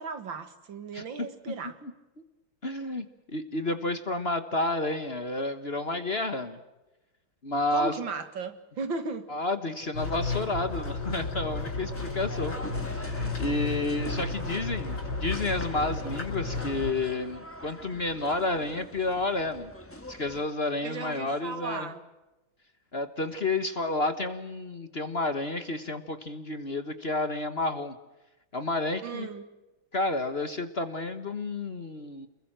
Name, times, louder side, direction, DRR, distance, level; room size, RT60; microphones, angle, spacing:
voice 1, 0.0-1.8 7.7-9.3 20.8-22.0 29.0-29.5, right 4 dB, 70° right, 2.6 m, -36 dB
voice 2, 2.6-3.1 3.3-6.6 7.4-8.0 9.3-12.5 12.9-19.7 20.1-21.9 22.9-27.9 28.5-29.3 29.9-32.3, left 2 dB, 35° left, 1.5 m, -30 dB
sound 1, 9.9-16.9, left 3 dB, 65° left, 5.9 m, -33 dB
sound 2, 12.0-20.5, left 1 dB, 5° left, 1.9 m, -44 dB
29.0 x 21.5 x 7.6 m
omnidirectional pair, 2.2 m